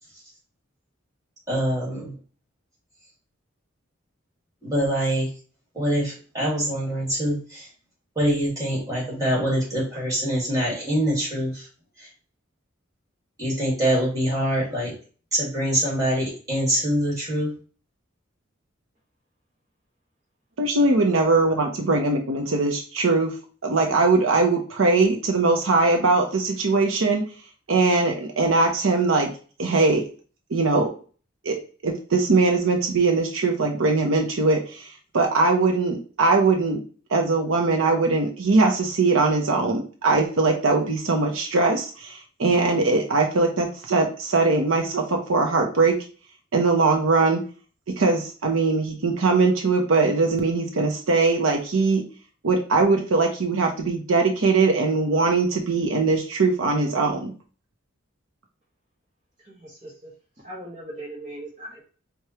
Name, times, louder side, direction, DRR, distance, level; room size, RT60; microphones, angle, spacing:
voice 1, 1.5-2.1 4.6-5.3 5.7-7.7 8.1-11.7 12.0-12.1 13.4-14.9 15.3-17.5, equal, 15° right, -4 dB, 1.7 m, -24 dB
voice 2, 20.6-23.3 23.6-27.2 27.7-29.3 29.6-30.0 30.5-30.9 31.4-31.6 31.8-36.8 37.1-46.0 46.5-47.4 48.0-52.0 52.4-57.3, right 3 dB, 80° right, 2 dB, 0.7 m, -21 dB
voice 3, 59.4-60.1 60.4-61.8, right 1 dB, 30° right, -6 dB, 0.9 m, -39 dB
4.7 x 2.3 x 2.8 m, 0.38 s
head